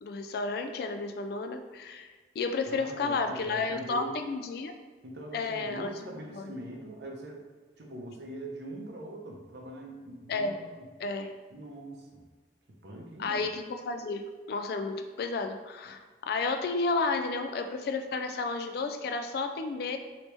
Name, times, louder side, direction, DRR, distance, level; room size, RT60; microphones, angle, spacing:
voice 1, 0.0-2.1 2.4-4.7 5.3-5.9 6.3-6.4 10.3-10.5 11.0-11.3 13.2-20.0, left 3 dB, 55° left, 7 dB, 0.3 m, -32 dB
voice 2, 2.7-4.2 5.0-7.4 7.8-10.9 11.5-12.2 12.8-13.5, right 1 dB, 65° right, 0 dB, 0.6 m, -42 dB
3.2 x 2.9 x 3.0 m, 1.4 s
head